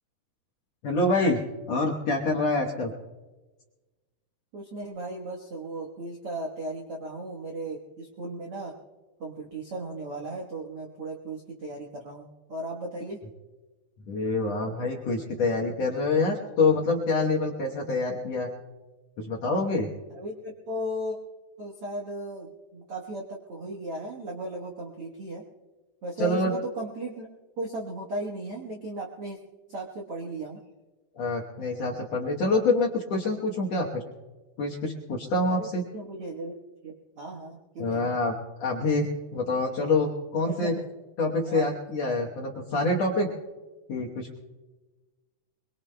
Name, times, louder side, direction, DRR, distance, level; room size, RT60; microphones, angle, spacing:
voice 1, 0.8-1.4 1.7-2.9 14.1-18.5 19.2-19.9 26.2-26.5 31.1-34.0 34.6-35.8 37.8-40.7 41.2-43.3 43.9-44.4, left 2 dB, 70° left, -2 dB, 1.6 m, -26 dB
voice 2, 4.5-8.7 9.2-13.2 20.1-21.2 21.6-25.4 26.0-27.3 27.6-29.4 29.7-30.6 35.5-35.7 35.9-36.5 36.8-38.1 40.5-40.8 41.5-41.7, right 1 dB, 75° right, -2 dB, 1.3 m, -36 dB
25.0 x 22.0 x 2.2 m, 1.2 s
omnidirectional pair, 4.6 m